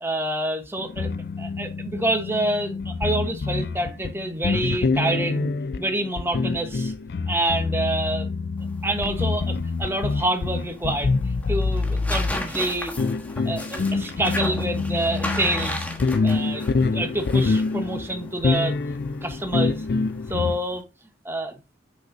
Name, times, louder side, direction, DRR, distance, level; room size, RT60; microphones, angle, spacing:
voice 1, 0.0-1.1 1.4-6.9 7.3-8.3 8.8-11.1 11.5-13.0 13.5-15.9 16.2-16.7 16.9-18.8 19.2-19.8 20.3-20.8 21.2-21.6, right 1 dB, 10° right, 1.1 m, -27 dB
sound 1, 0.8-20.6, left 3 dB, 55° left, 0.4 m, -26 dB
sound 2, 8.6-20.8, left 1 dB, 10° left, 1.3 m, -36 dB
7.7 x 6.0 x 2.7 m
head